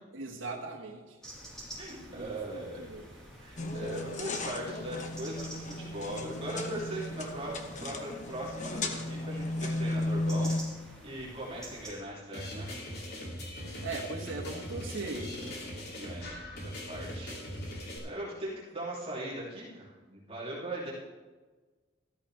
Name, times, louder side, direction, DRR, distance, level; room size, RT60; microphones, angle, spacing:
voice 1, 0.1-1.2 2.1-3.1 13.8-15.4, right 3 dB, 80° right, -2 dB, 1.5 m, -39 dB
sound 1, 1.2-11.9, right 1 dB, 5° left, 3.7 m, -49 dB
voice 2, 1.8-2.8 3.4-10.5 11.0-12.7 16.0-20.9, right 1 dB, 30° right, -7 dB, 2.8 m, -40 dB
sound 2, 3.6-10.6, left 1 dB, 40° left, 1.1 m, -35 dB
sound 3, 12.3-18.0, equal, 55° left, 2.7 m, -40 dB
13.5 x 13.5 x 3.3 m, 1.3 s
head